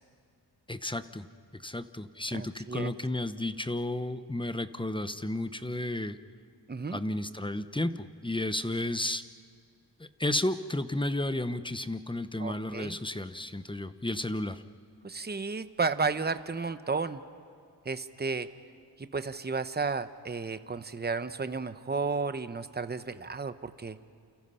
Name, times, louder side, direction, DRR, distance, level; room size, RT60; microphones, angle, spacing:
voice 1, 0.7-1.3 1.5-6.2 6.9-9.2 10.0-14.6, left 1 dB, 10° left, 11 dB, 0.9 m, -32 dB
voice 2, 2.3-2.9 6.7-7.0 12.4-13.0 15.0-17.2 17.8-18.5 19.0-24.0, right 4 dB, 20° right, 11 dB, 0.9 m, -33 dB
29.5 x 29.0 x 5.7 m, 2.3 s
wide cardioid pair, 90°, 44 cm